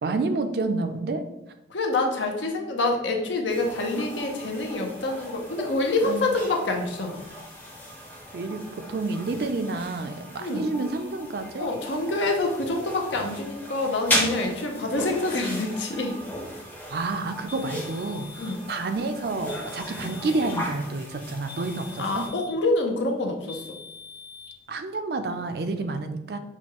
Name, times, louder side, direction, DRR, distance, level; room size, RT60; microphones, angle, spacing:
voice 1, 0.0-1.2 6.0-6.3 8.3-11.7 16.9-22.3 24.7-26.4, right 3 dB, 60° right, 8 dB, 0.4 m, -29 dB
voice 2, 1.7-7.2 10.4-10.7 11.5-16.2 18.4-18.6 22.0-23.6, left 2 dB, 90° left, 2 dB, 0.7 m, -26 dB
sound 1, 3.5-22.3, equal, 10° left, 0.5 m, -36 dB
sound 2, 17.5-18.6 19.5-20.6 21.5-22.6 23.5-24.6, left 6 dB, 55° left, 1.1 m, -44 dB
6.1 x 2.3 x 2.9 m, 0.89 s
head